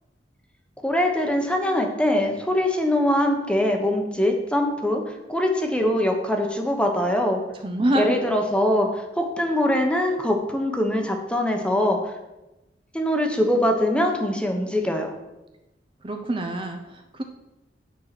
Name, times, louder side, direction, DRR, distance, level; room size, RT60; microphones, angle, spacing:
voice 1, 0.8-5.0 5.3-7.4 7.9-12.0 12.9-15.1, left 1 dB, 5° left, 3 dB, 0.9 m, -22 dB
voice 2, 7.6-8.2 16.0-17.2, right 1 dB, 30° right, 4 dB, 0.6 m, -26 dB
9.1 x 4.6 x 5.9 m, 0.98 s
head